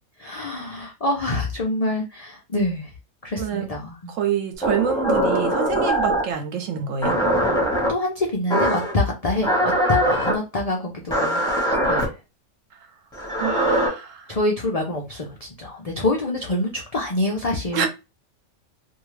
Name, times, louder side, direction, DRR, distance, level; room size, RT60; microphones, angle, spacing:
voice 1, 0.2-2.9 3.2-4.1 7.9-12.1 14.3-17.9, left 1 dB, 70° left, 0.3 m, -26 dB
voice 2, 3.4-3.7 4.1-7.2 13.4-14.2 17.7-17.9, right 8 dB, 70° right, 0.9 m, -26 dB
sound 1, 4.6-6.3 7.0-7.9 8.5-8.9 9.4-10.3 11.1-12.0 13.1-13.9, equal, 5° left, 0.9 m, -21 dB
2.7 x 2.3 x 3.1 m
omnidirectional pair, 1.5 m